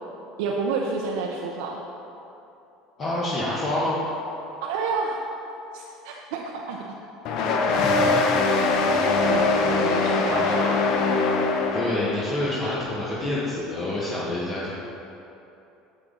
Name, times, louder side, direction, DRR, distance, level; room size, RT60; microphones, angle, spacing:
voice 1, 0.4-1.8 4.6-5.2 5.7-6.8 8.6-10.9, right 4 dB, 85° right, -1 dB, 0.7 m, -30 dB
voice 2, 3.0-4.0 7.8-8.1 11.7-14.7, left 1 dB, 35° left, -7 dB, 1.3 m, -27 dB
sound 1, 7.3-12.4, left 3 dB, 60° left, 0.8 m, -22 dB
7.5 x 7.5 x 3.9 m, 2.9 s
supercardioid pair, 120°, 0 cm